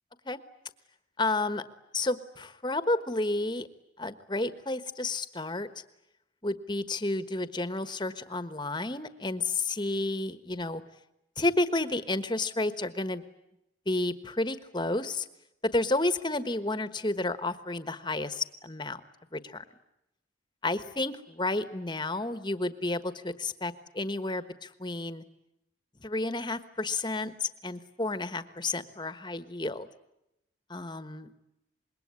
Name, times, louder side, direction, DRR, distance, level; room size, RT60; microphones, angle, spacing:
voice 1, 1.2-1.6 1.9-3.7 4.0-5.7 6.4-10.8 11.4-13.2 13.9-15.3 15.7-19.0 19.3-19.6 20.6-25.2 26.0-29.9 30.7-31.3, left 2 dB, 25° left, 12 dB, 1.3 m, -31 dB
26.5 x 22.0 x 9.7 m, 0.86 s
head